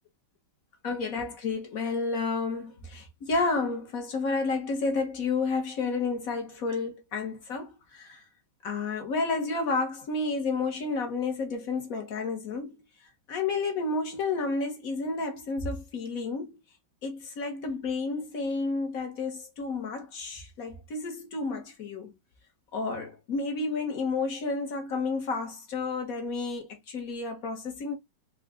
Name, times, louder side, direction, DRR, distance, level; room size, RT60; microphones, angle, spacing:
voice 1, 0.8-8.2 8.6-12.8 13.3-16.5 17.0-22.1 22.7-28.0, left 3 dB, 50° left, 1.2 m, -31 dB
3.9 x 2.3 x 3.4 m
omnidirectional pair, 2.2 m